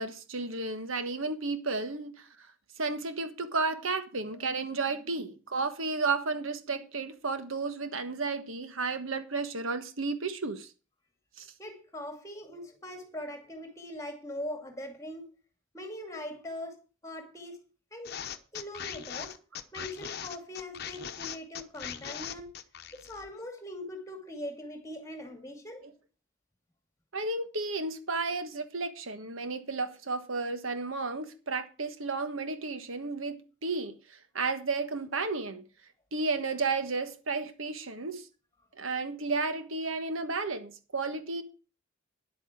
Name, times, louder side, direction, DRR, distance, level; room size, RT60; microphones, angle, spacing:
voice 1, 0.0-2.2 2.8-10.7 11.4-11.5 25.8-25.9 27.1-35.6 36.1-38.3 38.8-41.4, right 3 dB, 80° right, 1.4 m, -33 dB
voice 2, 11.6-15.3 15.7-16.8 17.0-17.6 17.9-18.2 18.5-19.3 19.7-22.5 22.9-25.9, left 1 dB, 15° left, 2.4 m, -41 dB
sound 1, 18.0-23.3, left 8 dB, 50° left, 0.9 m, -40 dB
10.5 x 8.7 x 6.0 m
head